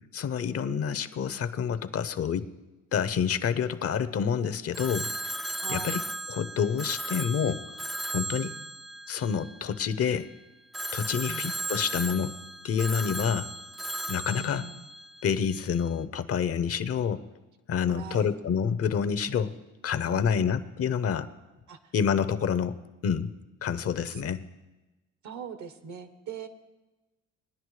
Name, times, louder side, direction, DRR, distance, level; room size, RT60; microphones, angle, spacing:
voice 1, 0.1-2.5 2.9-5.1 5.7-6.0 6.3-8.5 9.1-10.3 10.9-12.4 12.6-13.5 14.1-14.6 15.2-17.2 17.7-19.5 19.8-21.3 21.9-22.8 23.0-23.3 23.6-24.4, left 7 dB, 50° left, 13 dB, 0.7 m, -28 dB
Telephone, 4.7-10.0 10.7-15.6, right 1 dB, ahead, 0.4 m, -36 dB
voice 2, 5.6-6.0 8.4-8.7 11.3-11.6 14.2-14.9 17.8-18.4 20.1-20.6 21.7-21.9 24.1-24.2 25.2-26.5, right 6 dB, 70° right, 9 dB, 1.2 m, -42 dB
20.0 x 10.0 x 3.3 m, 1.1 s
cardioid pair, 90°, 30 cm